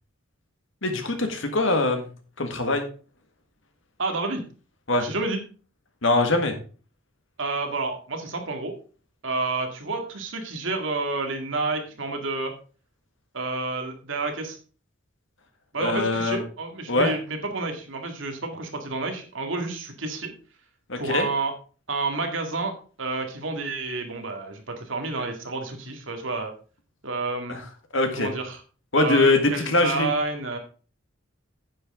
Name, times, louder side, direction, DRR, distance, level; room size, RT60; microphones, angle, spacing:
voice 1, 0.8-2.1 2.4-2.9 4.9-5.1 6.0-6.6 15.8-16.4 16.9-17.1 20.9-21.3 27.5-27.6 27.9-28.3 28.9-30.1, left 2 dB, 65° left, 6 dB, 1.8 m, -22 dB
voice 2, 4.0-4.4 5.0-5.4 7.4-8.7 9.2-12.5 13.3-14.6 15.7-20.3 21.0-21.5 21.9-26.5 27.0-27.6 28.2-28.6 29.0-30.6, right 3 dB, 70° right, 4 dB, 2.0 m, -29 dB
9.9 x 7.8 x 3.7 m, 0.37 s
head